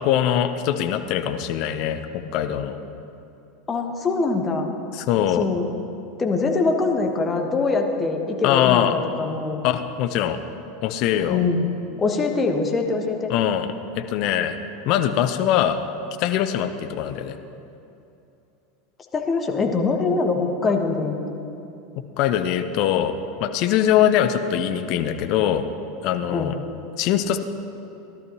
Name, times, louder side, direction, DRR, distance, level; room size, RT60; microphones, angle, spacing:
voice 1, 0.0-2.8 4.9-5.4 8.4-8.9 9.6-10.4 10.8-11.4 13.3-14.6 14.9-15.8 16.2-17.4 22.2-25.7 26.0-26.6 27.0-27.4, left 10 dB, 50° left, 9 dB, 0.7 m, -22 dB
voice 2, 3.7-4.7 5.4-5.7 6.2-9.6 11.3-11.7 12.0-13.3 19.1-21.4 26.3-26.5, left 4 dB, 25° left, 3 dB, 1.4 m, -23 dB
16.5 x 12.0 x 3.1 m, 2.8 s
figure-of-eight pair, 80°, 0 cm